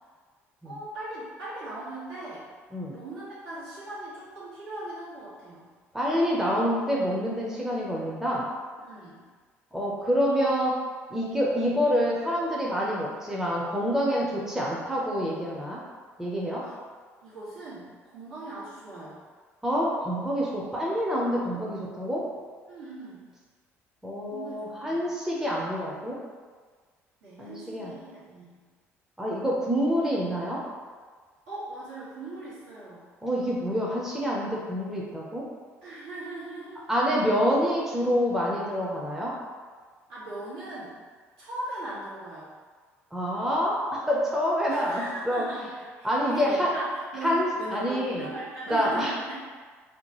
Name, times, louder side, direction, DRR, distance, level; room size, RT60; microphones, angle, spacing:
voice 1, 0.6-2.5 2.9-5.7 8.8-9.2 16.6-16.8 17.2-19.2 21.5-21.7 22.7-23.2 24.3-25.0 27.2-28.6 31.5-33.1 35.8-36.9 40.1-40.9 41.4-42.5 44.7-49.3, right 2 dB, 70° right, -11 dB, 1.3 m, -39 dB
voice 2, 5.9-8.5 9.7-10.8 11.1-15.8 16.2-16.6 19.6-22.2 24.0-26.2 27.4-27.9 29.2-30.6 33.2-35.5 36.9-39.3 43.1-45.5 46.0-46.7 47.2-48.3 48.7-49.1, equal, 5° right, -5 dB, 0.6 m, -27 dB
2.8 x 2.2 x 2.9 m, 1.5 s
figure-of-eight pair, 55°, 7 cm